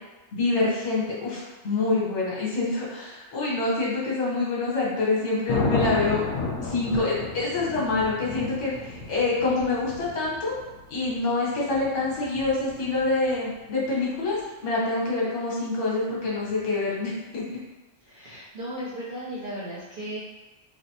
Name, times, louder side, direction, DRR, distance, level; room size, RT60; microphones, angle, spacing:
voice 1, 0.3-6.2 6.6-10.5 10.9-17.5, left 3 dB, 60° left, -5 dB, 1.1 m, -26 dB
Thunder, 5.5-13.5 16.2-16.6, left 3 dB, 75° left, 1.0 m, -33 dB
voice 2, 18.1-20.2, right 1 dB, 70° right, -8 dB, 0.4 m, -35 dB
3.2 x 2.0 x 2.7 m, 1.1 s
omnidirectional pair, 1.5 m